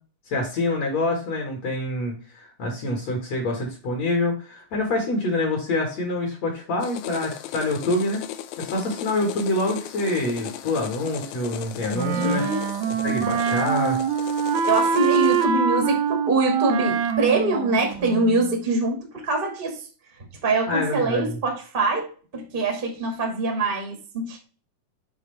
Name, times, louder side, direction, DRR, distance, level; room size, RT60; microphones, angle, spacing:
voice 1, 0.3-8.2 8.6-12.5 13.0-14.0 20.7-21.4, left 2 dB, 55° left, 1 dB, 2.4 m, -26 dB
sound 1, 6.8-15.5, left 11 dB, 85° left, 1.7 m, -37 dB
Wind instrument woodwind instrument, 11.9-18.5, right 7 dB, 75° right, 1.7 m, -24 dB
voice 2, 12.1-12.9 14.7-19.8 20.4-24.4, right 2 dB, 30° right, 1 dB, 1.0 m, -24 dB
7.0 x 4.8 x 3.2 m, 0.38 s
omnidirectional pair, 4.0 m